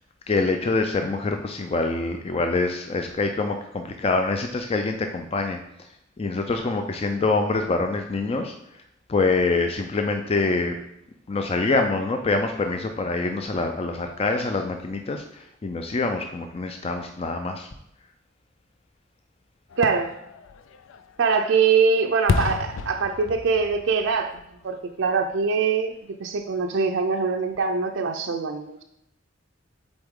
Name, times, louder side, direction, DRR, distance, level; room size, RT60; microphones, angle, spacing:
voice 1, 0.3-5.6 6.2-8.5 9.1-10.7 11.3-17.7, left 3 dB, 30° left, 5 dB, 0.4 m, -25 dB
Fireworks, 19.7-25.5 25.9-26.0, left 4 dB, 85° left, 0.4 m, -32 dB
voice 2, 19.8-20.1 21.2-24.4 24.6-25.9 26.2-28.8, right 5 dB, 70° right, 4 dB, 0.5 m, -23 dB
7.9 x 4.0 x 3.6 m, 0.80 s
head